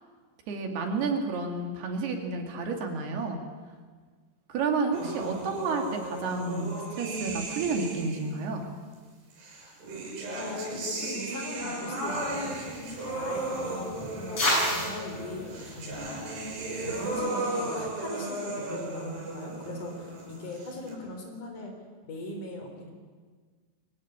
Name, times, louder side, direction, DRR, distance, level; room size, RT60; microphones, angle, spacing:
voice 1, 0.5-3.4 4.5-8.7, right 4 dB, 75° right, 3 dB, 4.2 m, -30 dB
sound 1, 4.9-8.4 9.4-20.9, right 2 dB, 90° right, 8.2 m, -35 dB
voice 2, 10.4-12.6 13.1-16.1 16.8-21.7 22.1-22.9, left 1 dB, 50° left, 2 dB, 5.2 m, -39 dB
sound 2, 12.0-17.1, left 1 dB, 35° left, 8.2 m, -34 dB
22.5 x 15.5 x 9.4 m, 1.5 s
omnidirectional pair, 4.7 m